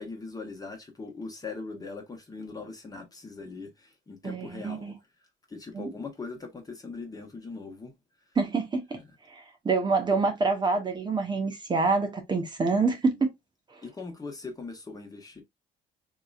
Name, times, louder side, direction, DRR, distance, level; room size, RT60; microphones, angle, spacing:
voice 1, 0.0-4.9 5.5-7.9 8.9-9.0 13.8-15.4, left 4 dB, 20° left, 1.2 m, -40 dB
voice 2, 4.2-4.9 5.7-5.9 8.4-8.8 9.3-13.3, right 4 dB, 25° right, 0.9 m, -26 dB
3.8 x 2.8 x 2.3 m
cardioid pair, 110°, 17 cm